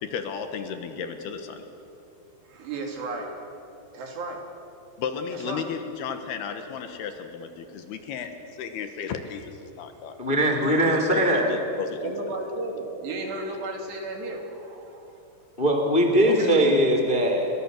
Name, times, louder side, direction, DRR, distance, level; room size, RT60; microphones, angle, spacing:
voice 1, 0.0-1.6 5.0-10.2 10.8-12.1 16.2-16.5, left 6 dB, 70° left, 7 dB, 3.1 m, -34 dB
voice 2, 2.5-3.4 3.9-4.4 5.3-5.6 12.0-15.2 16.3-16.9, right 2 dB, 70° right, 2 dB, 5.0 m, -34 dB
voice 3, 10.2-11.5 15.6-17.5, right 1 dB, 20° left, 3 dB, 1.5 m, -21 dB
29.5 x 22.5 x 6.6 m, 2.8 s
omnidirectional pair, 5.0 m